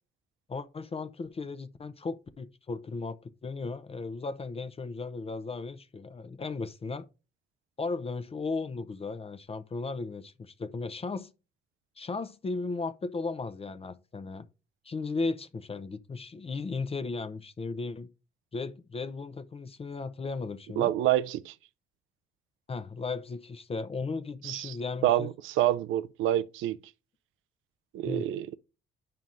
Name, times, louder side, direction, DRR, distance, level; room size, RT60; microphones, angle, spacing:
voice 1, 0.5-7.1 7.8-11.3 12.0-14.5 14.8-18.1 18.5-20.9 22.7-25.3 28.1-28.3, left 3 dB, 30° left, 0.5 m, -36 dB
voice 2, 20.8-21.5 24.4-24.8 25.0-26.8 27.9-28.6, right 13 dB, 85° right, 0.4 m, -27 dB
9.1 x 5.7 x 2.5 m
cardioid pair, 90°, 20 cm